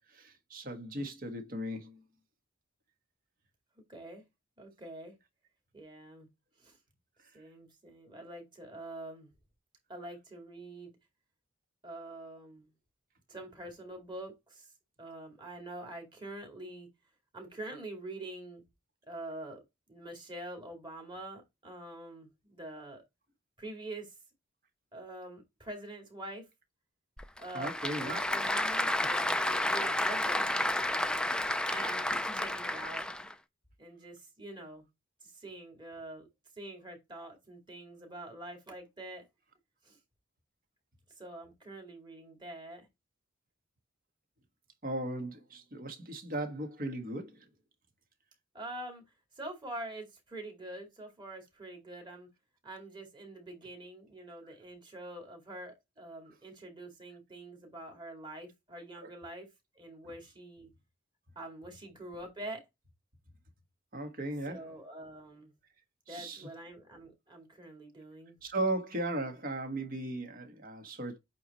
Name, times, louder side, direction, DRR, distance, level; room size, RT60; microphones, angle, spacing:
voice 1, 0.1-2.0 27.5-28.2 44.8-47.4 59.0-59.1 63.9-64.6 66.1-66.5 68.4-71.2, right 1 dB, 45° right, 1.5 m, -37 dB
voice 2, 3.8-4.2 4.6-5.1 5.7-6.3 6.6-6.8 7.3-9.3 9.9-10.9 11.8-12.7 13.3-14.7 15.0-16.9 17.3-18.6 19.1-19.6 19.9-23.0 23.6-24.2 24.9-26.5 27.4-30.5 30.7-31.4 31.7-33.1 33.8-34.9 35.2-36.3 36.6-39.2 39.8-40.0 41.1-42.9 48.5-49.0 49.3-52.3 52.6-59.5 59.7-60.7 61.4-62.6 64.5-65.5 66.1-68.4, right 1 dB, 25° right, 2.3 m, -45 dB
Applause / Crowd, 27.2-33.3, left 1 dB, 5° left, 0.4 m, -31 dB
8.3 x 3.1 x 4.2 m
head